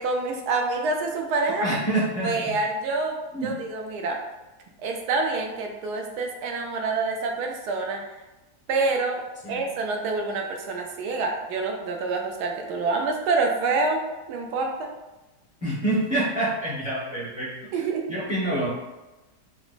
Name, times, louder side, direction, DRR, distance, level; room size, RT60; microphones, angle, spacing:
voice 1, 0.0-1.6 2.2-4.2 4.8-8.0 8.7-9.2 9.5-14.0 14.3-14.9 17.7-18.1, right 3 dB, 75° right, 2 dB, 1.1 m, -27 dB
voice 2, 1.6-2.6 3.3-3.6 9.4-9.7 15.6-17.5 18.1-18.7, right 1 dB, 10° right, -8 dB, 0.5 m, -27 dB
4.9 x 2.0 x 2.5 m, 1.1 s
omnidirectional pair, 1.8 m